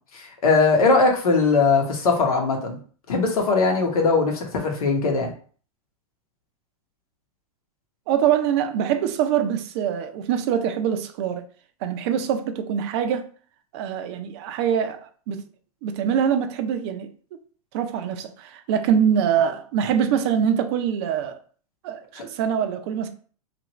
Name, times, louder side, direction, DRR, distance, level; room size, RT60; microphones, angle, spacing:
voice 1, 0.1-2.8 3.1-5.3 22.2-22.3, left 4 dB, 80° left, 1.0 m, -20 dB
voice 2, 8.1-11.4 11.8-13.3 13.7-15.0 15.3-15.4 15.8-17.1 17.7-21.4 21.8-23.1, right 8 dB, 45° right, 0.4 m, -24 dB
2.9 x 2.5 x 2.9 m
hypercardioid pair, 120°, 18 cm